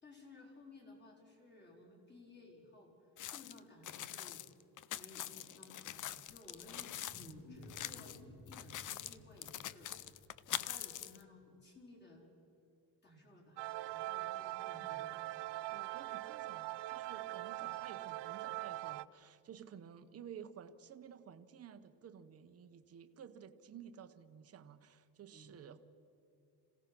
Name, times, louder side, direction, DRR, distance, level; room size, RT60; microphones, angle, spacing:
voice 1, 0.0-4.4 4.9-12.3 13.0-13.6 13.9-15.1 25.3-25.5, left 2 dB, 25° left, -2 dB, 4.4 m, -58 dB
sound 1, 3.2-7.3 7.6-8.2 8.5-11.2, left 12 dB, 45° left, 0.6 m, -44 dB
Wild animals, 6.1-11.1, left 1 dB, 65° left, 3.0 m, -57 dB
sound 2, 13.6-19.1, right 17 dB, 80° right, 0.5 m, -42 dB
voice 2, 15.7-25.8, right 8 dB, 35° right, 9 dB, 0.9 m, -53 dB
26.5 x 16.5 x 6.0 m, 2.9 s
cardioid pair, 170°, 42 cm